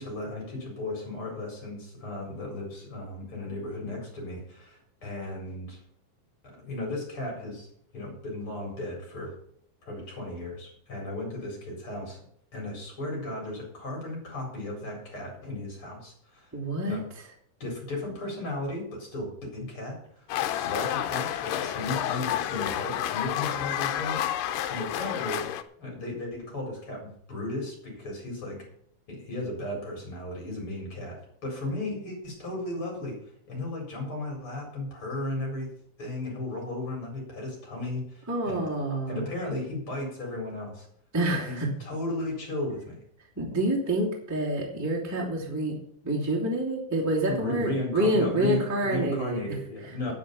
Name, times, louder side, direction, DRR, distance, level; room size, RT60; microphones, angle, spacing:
voice 1, 0.0-5.8 6.6-7.7 7.9-9.3 9.8-12.2 12.5-16.5 16.8-17.0 17.6-20.3 20.6-24.2 24.7-25.4 25.8-28.7 29.1-33.2 33.5-35.7 36.0-38.7 39.1-40.9 41.3-43.0 47.3-50.1, left 2 dB, 40° left, 0 dB, 5.1 m, -35 dB
voice 2, 16.5-17.0 38.3-39.2 41.1-41.7 43.4-45.8 46.0-49.4, right 1 dB, 5° right, -4 dB, 2.5 m, -27 dB
sound 1, 20.3-25.6, left 11 dB, 85° left, 2.4 m, -30 dB
9.3 x 9.1 x 7.0 m, 0.66 s
omnidirectional pair, 3.8 m